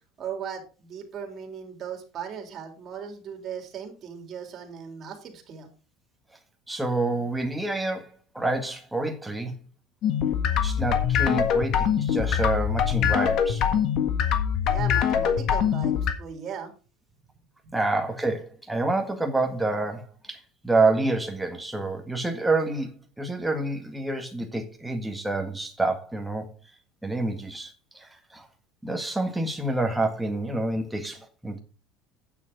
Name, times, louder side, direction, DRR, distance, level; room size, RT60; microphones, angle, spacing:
voice 1, 0.2-5.7 14.7-16.7 17.6-17.7, right 7 dB, 35° right, 3.1 m, -38 dB
voice 2, 6.7-8.1 8.3-9.5 10.6-13.8 17.7-26.5 27.0-28.5 28.8-31.6, right 2 dB, 5° right, 1.8 m, -28 dB
sound 1, 10.0-16.1, left 8 dB, 50° left, 1.6 m, -23 dB
9.4 x 6.9 x 5.1 m
cardioid pair, 150°, 0 cm